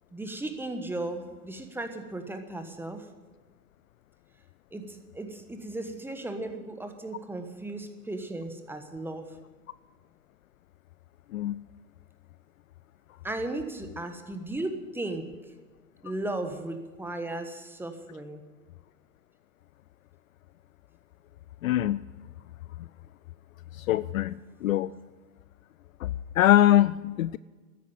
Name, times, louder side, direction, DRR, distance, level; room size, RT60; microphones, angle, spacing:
voice 1, 0.1-3.1 4.7-9.3 13.2-15.3 16.0-18.4, right 2 dB, 5° right, 6 dB, 1.3 m, -36 dB
voice 2, 21.6-22.0 23.8-24.9 26.0-27.4, left 13 dB, 60° left, 18 dB, 0.5 m, -23 dB
13.5 x 10.5 x 9.5 m, 1.3 s
hypercardioid pair, 115°, 49 cm